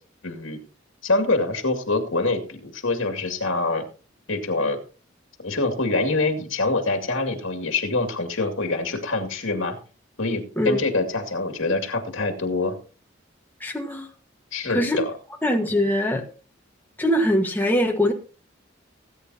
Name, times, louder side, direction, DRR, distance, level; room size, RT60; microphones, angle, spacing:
voice 1, 0.2-0.6 1.0-3.8 4.3-4.8 5.4-9.8 10.2-12.7 14.5-15.1, left 2 dB, 75° left, 5 dB, 2.3 m, -25 dB
voice 2, 13.6-14.1 14.7-15.0 15.4-16.2 17.0-18.1, left 1 dB, 10° left, 2 dB, 1.4 m, -22 dB
19.5 x 8.9 x 2.8 m, 0.37 s
head